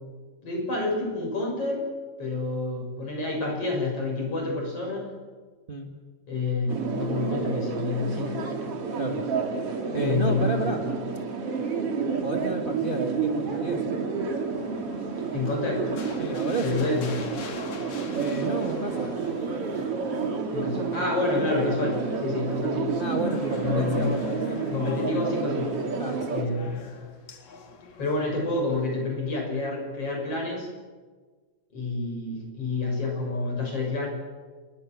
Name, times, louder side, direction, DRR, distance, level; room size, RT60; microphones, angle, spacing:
voice 1, 0.4-1.8 2.2-5.1 6.3-8.5 10.0-10.7 15.3-15.8 16.6-17.2 20.5-22.9 23.5-24.1 24.7-25.8 26.3-26.8 28.0-30.7 31.7-34.1, left 3 dB, 50° left, 1 dB, 7.9 m, -28 dB
sound 1, 6.7-26.4, right 5 dB, 55° right, 3.1 m, -30 dB
voice 2, 9.9-10.8 12.2-14.0 16.2-16.9 18.2-19.1 23.0-24.7 26.0-26.6, right 2 dB, 20° right, 2 dB, 1.6 m, -31 dB
sound 2, 14.3-28.8, left 5 dB, 70° left, 3.6 m, -45 dB
28.5 x 22.0 x 6.4 m, 1.4 s
omnidirectional pair, 3.3 m